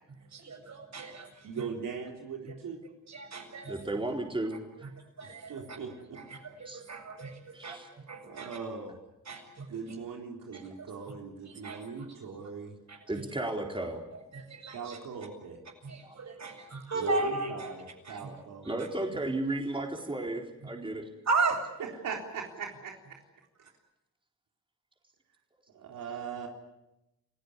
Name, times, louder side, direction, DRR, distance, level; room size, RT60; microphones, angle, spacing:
voice 1, 0.3-1.5 3.1-3.7 4.8-4.9 5.2-5.6 6.2-7.8 8.1-8.6 9.3-9.7 10.5-10.6 11.5-12.1 12.9-13.0 14.3-15.0 15.8-17.7 18.0-18.3 18.6-18.7 21.3-21.6, right 3 dB, 60° right, 4 dB, 7.6 m, -35 dB
voice 2, 1.4-2.8 5.2-6.2 8.2-8.9 9.7-12.8 14.7-15.6 16.9-18.6 21.8-22.9 25.7-26.5, right 5 dB, 85° right, 1 dB, 3.8 m, -40 dB
voice 3, 3.7-4.6 6.6-6.8 7.5-8.1 13.1-14.0 16.0-16.2 18.1-18.2 18.6-21.0, right 2 dB, 15° right, 2 dB, 4.2 m, -34 dB
29.5 x 16.5 x 9.8 m, 0.92 s
cardioid pair, 75°, 31 cm